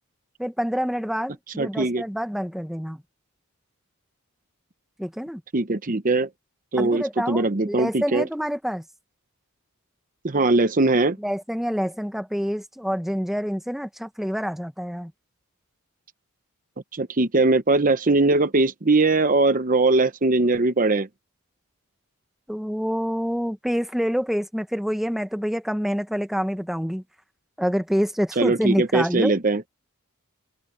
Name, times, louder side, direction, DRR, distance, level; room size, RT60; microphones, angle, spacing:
voice 1, 0.4-3.0 5.0-5.4 6.8-8.8 11.2-15.1 22.5-27.0 27.6-29.4, equal, ahead, 1.0 m, -27 dB
voice 2, 1.6-2.0 5.5-6.3 6.7-8.3 10.2-11.2 16.9-21.1 28.4-29.6, right 3 dB, 35° right, 0.8 m, -20 dB
head